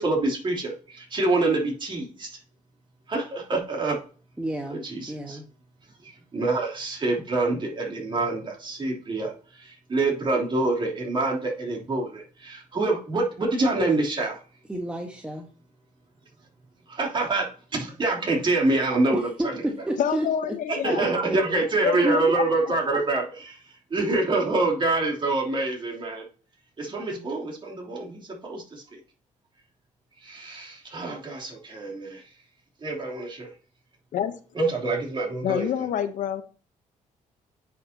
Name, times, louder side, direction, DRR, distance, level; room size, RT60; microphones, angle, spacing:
voice 1, 0.0-2.3 3.1-4.0 4.7-5.4 6.0-14.4 16.9-19.6 20.7-23.6 23.9-26.3 26.8-29.0 30.2-32.3 32.8-33.5 34.5-35.9, right 2 dB, 35° right, 3.2 m, -26 dB
voice 2, 4.4-4.8 5.1-5.4 14.7-15.5 19.4-19.5 19.9-20.3 21.0-21.1 22.0-22.2, right 1 dB, 10° right, 1.2 m, -29 dB
voice 3, 20.0-21.0 21.8-22.4 34.1-34.4 35.4-36.4, left 9 dB, 70° left, 0.8 m, -27 dB
9.4 x 5.7 x 2.8 m
cardioid pair, 110°, 14 cm